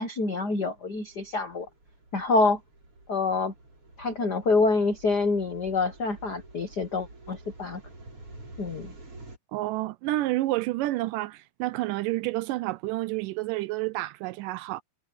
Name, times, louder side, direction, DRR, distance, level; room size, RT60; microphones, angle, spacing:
voice 1, 0.0-1.7 2.1-2.6 3.1-3.5 4.0-7.8 8.6-8.9, left 3 dB, 80° left, 0.9 m, -26 dB
sound 1, 0.7-9.4, right 2 dB, 40° right, 7.0 m, -49 dB
voice 2, 9.5-14.8, right 18 dB, 80° right, 2.0 m, -29 dB
omnidirectional pair, 4.0 m